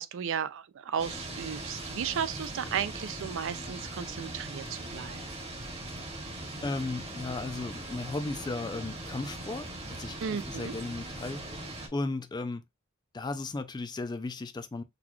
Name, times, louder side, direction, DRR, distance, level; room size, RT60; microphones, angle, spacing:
voice 1, 0.0-5.2 10.2-10.7, right 7 dB, 60° right, 0.4 m, -34 dB
sound 1, 1.0-11.9, right 1 dB, 30° right, 1.0 m, -40 dB
voice 2, 6.6-12.6 13.1-14.8, left 3 dB, 20° left, 0.3 m, -36 dB
3.9 x 2.3 x 3.0 m
head